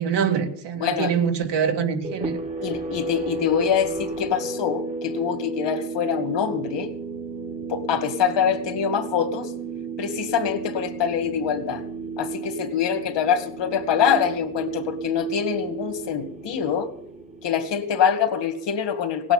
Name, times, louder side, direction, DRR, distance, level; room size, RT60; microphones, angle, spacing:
voice 1, 0.0-2.4, right 7 dB, 70° right, 2.2 m, -24 dB
voice 2, 0.8-1.1 2.6-6.9 7.7-9.5 10.0-11.8 12.2-16.9 17.4-19.3, left 7 dB, 80° left, 2.2 m, -24 dB
sound 1, 2.0-18.3, right 4 dB, 15° right, 1.1 m, -33 dB
18.0 x 8.9 x 8.9 m
wide cardioid pair, 170°, 43 cm